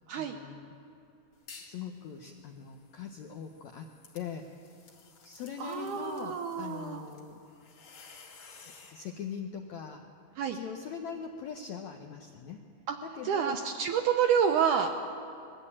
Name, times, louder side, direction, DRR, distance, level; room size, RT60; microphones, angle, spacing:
voice 1, 0.1-0.7 1.6-3.9 4.1-4.7 5.2-7.4 8.6-10.0 10.5-12.6 13.0-13.6, left 7 dB, 80° left, 3 dB, 1.6 m, -41 dB
sound 1, 1.3-1.8 2.2-9.1, left 5 dB, 50° left, 2.9 m, -54 dB
voice 2, 5.6-7.0 10.4-10.6 12.9-13.0 13.2-15.0, right 7 dB, 80° right, 5 dB, 1.9 m, -28 dB
21.0 x 14.5 x 8.7 m, 2.6 s
omnidirectional pair, 4.4 m